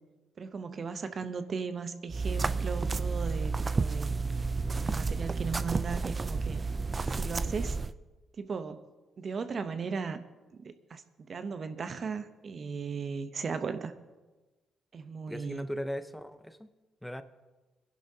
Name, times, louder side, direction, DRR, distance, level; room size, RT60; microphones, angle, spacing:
voice 1, 0.4-4.2 4.8-6.6 7.1-7.8 8.4-8.8 9.2-10.2 10.6-11.0 11.3-13.9 14.9-15.7, right 5 dB, 45° right, 10 dB, 0.8 m, -37 dB
sound 1, 2.1-7.9, right 4 dB, 30° right, 0.4 m, -31 dB
voice 2, 15.3-16.7 17.0-17.2, equal, 5° left, 10 dB, 0.8 m, -38 dB
25.0 x 11.5 x 2.8 m, 1.2 s
cardioid pair, 90°, 0 cm